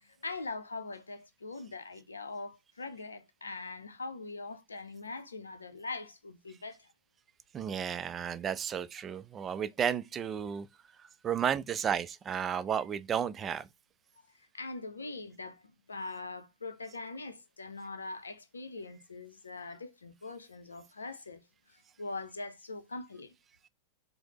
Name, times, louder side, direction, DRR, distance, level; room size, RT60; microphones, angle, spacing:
voice 1, 0.0-6.9 14.2-14.3 14.5-15.6 15.9-21.4 22.0-23.3, left 3 dB, 75° left, 0.5 m, -42 dB
voice 2, 7.5-10.7 11.0-13.7, right 8 dB, 25° right, 0.3 m, -33 dB
4.8 x 2.0 x 2.9 m
figure-of-eight pair, 90°, 0 cm